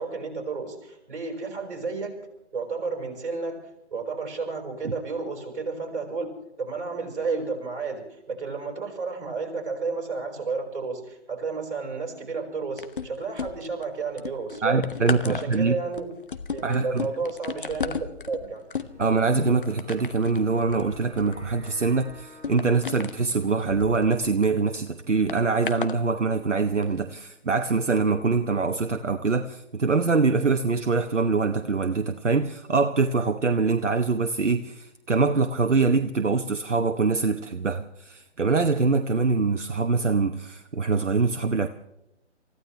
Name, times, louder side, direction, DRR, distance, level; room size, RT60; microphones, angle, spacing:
voice 1, 0.0-2.1 2.5-3.6 3.9-6.3 6.6-14.8 15.2-16.2 16.5-18.6, right 4 dB, 45° right, 2 dB, 5.1 m, -32 dB
sound 1, 12.8-13.8 14.2-24.5 25.3-26.0 26.7-26.8, left 5 dB, 45° left, 1.0 m, -35 dB
voice 2, 14.6-15.8 16.6-17.1 19.0-41.7, right 4 dB, 80° right, 7 dB, 1.0 m, -24 dB
sound 2, 18.7-25.6, equal, 5° right, 1.2 m, -51 dB
29.0 x 15.0 x 3.3 m, 0.87 s
figure-of-eight pair, 150°, 36 cm